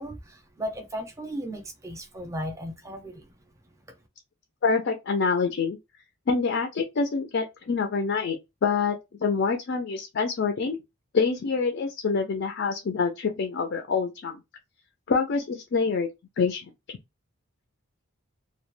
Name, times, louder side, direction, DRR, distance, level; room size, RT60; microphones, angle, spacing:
voice 1, 0.0-3.3, equal, 15° right, 0.5 m, -36 dB
voice 2, 4.6-5.8 6.3-10.8 11.1-14.4 15.1-16.1 16.4-17.0, left 5 dB, 55° left, 0.4 m, -26 dB
2.2 x 2.1 x 3.0 m
head